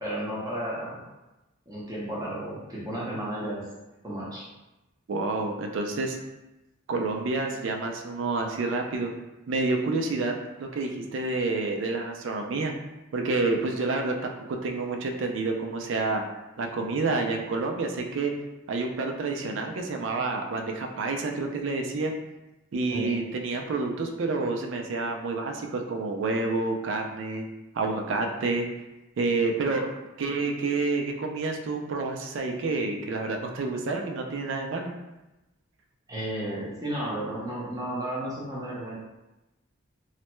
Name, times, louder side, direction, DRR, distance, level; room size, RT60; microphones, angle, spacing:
voice 1, 0.0-1.0 1.7-3.6 4.0-4.4 22.9-23.1 36.1-39.0, right 1 dB, 15° right, -7 dB, 0.7 m, -33 dB
voice 2, 5.1-6.2 6.9-9.1 9.5-10.3 10.6-12.7 13.1-16.2 16.6-18.3 18.7-22.1 22.7-27.5 27.7-28.7 29.2-29.9 30.2-34.9, right 3 dB, 60° right, 3 dB, 0.4 m, -28 dB
3.1 x 2.1 x 3.0 m, 1.0 s
head